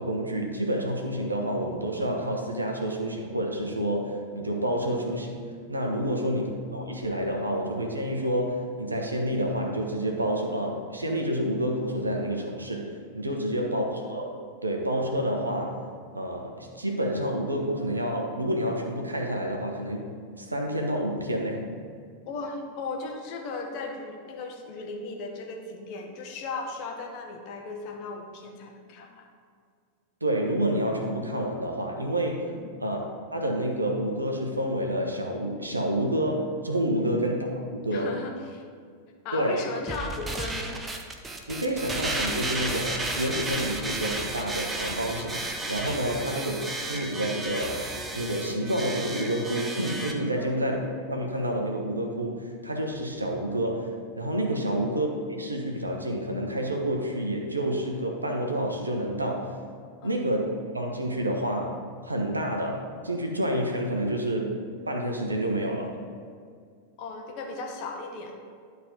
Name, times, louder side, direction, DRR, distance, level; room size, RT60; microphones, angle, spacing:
voice 1, 0.0-5.4 5.7-15.8 16.1-20.1 20.4-21.6 30.2-32.5 32.8-33.0 33.3-38.1 39.3-39.6 41.5-46.6 46.9-47.9 48.1-59.5 60.0-61.8 62.0-64.6 64.9-65.9, right 1 dB, 80° right, 1 dB, 1.1 m, -29 dB
voice 2, 6.0-6.4 13.3-13.7 22.3-29.3 32.5-32.7 37.0-37.1 37.9-38.6 39.2-40.8 46.1-46.2 50.4-50.5 54.5-54.7 60.0-60.2 67.0-68.5, left 3 dB, 45° left, 2 dB, 1.2 m, -37 dB
sound 1, 39.9-50.1, right 2 dB, 15° right, 0.8 m, -33 dB
11.0 x 4.0 x 5.1 m, 2.1 s
figure-of-eight pair, 90°, 0 cm